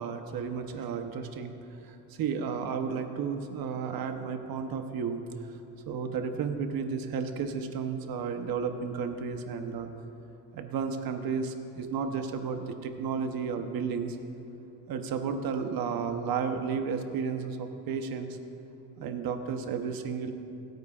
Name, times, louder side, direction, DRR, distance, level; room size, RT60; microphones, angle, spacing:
voice 1, 0.0-1.5 1.8-5.2 5.9-9.9 10.5-14.2 14.9-18.4 19.0-20.3, right 6 dB, 65° right, 6 dB, 0.9 m, -32 dB
26.5 x 9.3 x 2.4 m, 2.8 s
cardioid pair, 155°, 38 cm